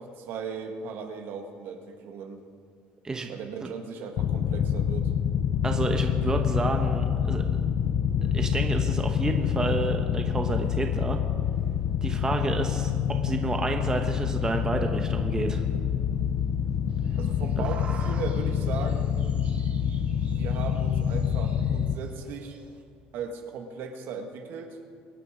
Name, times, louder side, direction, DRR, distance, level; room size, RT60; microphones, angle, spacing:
voice 1, 0.0-2.4 3.3-5.1 17.1-19.2 20.2-22.6 23.1-24.8, right 5 dB, 60° right, 4 dB, 1.7 m, -37 dB
sound 1, 4.2-21.9, left 8 dB, 50° left, 0.6 m, -27 dB
voice 2, 5.6-7.4 8.3-11.2 12.0-15.6 17.6-17.7, right 3 dB, 15° right, 4 dB, 0.9 m, -30 dB
sound 2, 16.9-22.8, right 5 dB, 35° right, 1.4 m, -48 dB
24.0 x 8.6 x 5.0 m, 2.2 s
cardioid pair, 135°, 4 cm